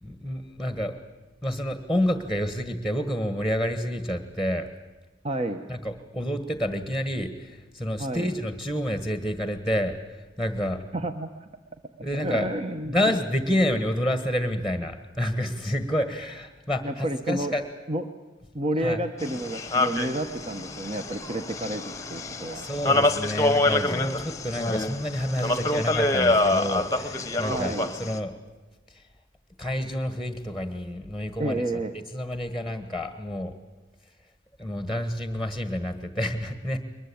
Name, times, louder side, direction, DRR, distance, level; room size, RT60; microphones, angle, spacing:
voice 1, 0.0-0.9 1.4-4.7 5.7-10.0 10.4-10.8 12.0-12.5 12.9-17.7 18.8-19.0 22.5-28.4 29.6-31.6 31.9-33.5 34.6-36.8, equal, ahead, 9 dB, 1.5 m, -29 dB
voice 2, 5.2-5.6 8.0-8.3 10.9-11.5 12.1-12.9 16.8-17.5 17.9-18.1 18.5-22.6 27.5-27.9 31.4-31.9, right 1 dB, 30° right, 7 dB, 1.0 m, -30 dB
sound 1, 19.2-28.2, left 2 dB, 15° left, 1.1 m, -26 dB
22.0 x 21.0 x 8.6 m, 1.2 s
head